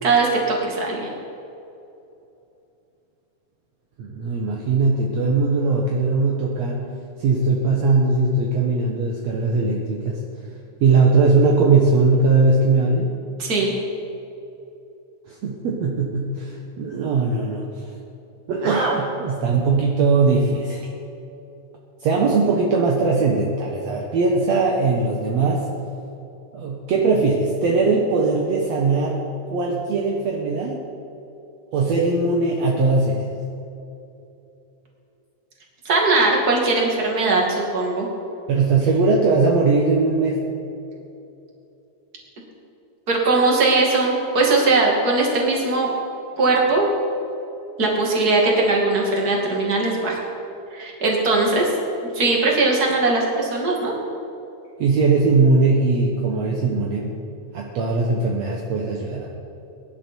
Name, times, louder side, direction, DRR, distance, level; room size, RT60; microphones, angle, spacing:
voice 1, 0.0-1.1 13.4-13.7 35.8-38.1 43.1-45.9 46.4-46.9 47.8-50.2 50.7-51.7 52.1-53.9, right 3 dB, 30° right, -2 dB, 2.8 m, -20 dB
voice 2, 4.0-6.9 7.2-10.2 10.8-13.1 15.3-17.9 18.5-20.9 22.0-25.7 26.5-29.2 29.5-30.8 31.7-33.2 38.5-40.5 54.8-57.2 57.5-59.3, right 3 dB, 65° right, -1 dB, 2.2 m, -20 dB
23.0 x 11.0 x 4.6 m, 2.8 s
omnidirectional pair, 3.5 m